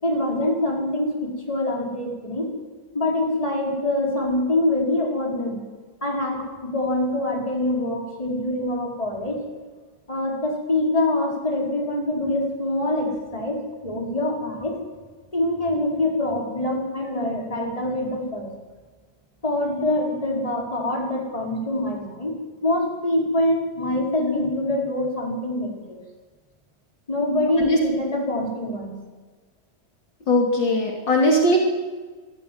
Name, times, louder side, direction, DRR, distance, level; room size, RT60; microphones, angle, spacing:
voice 1, 0.0-2.5 2.9-5.6 6.0-9.4 10.1-13.6 13.8-14.8 15.3-18.5 19.4-22.3 22.6-26.0 27.1-28.9, left 1 dB, 15° left, -1 dB, 4.9 m, -25 dB
voice 2, 30.3-31.6, left 1 dB, 65° left, 0 dB, 3.5 m, -19 dB
22.0 x 14.0 x 9.5 m, 1.3 s
omnidirectional pair, 2.1 m